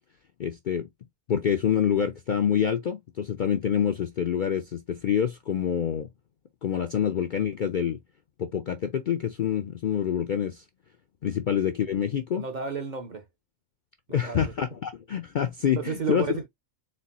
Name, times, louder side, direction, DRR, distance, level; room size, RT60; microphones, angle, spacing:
voice 1, 0.4-0.9 1.3-6.1 6.6-8.0 8.4-10.6 11.2-12.4 14.1-16.2, left 8 dB, 60° left, 0.5 m, -26 dB
voice 2, 12.4-13.2 14.1-14.5 15.7-16.5, right 6 dB, 40° right, 0.8 m, -32 dB
4.3 x 2.2 x 4.0 m
omnidirectional pair, 1.3 m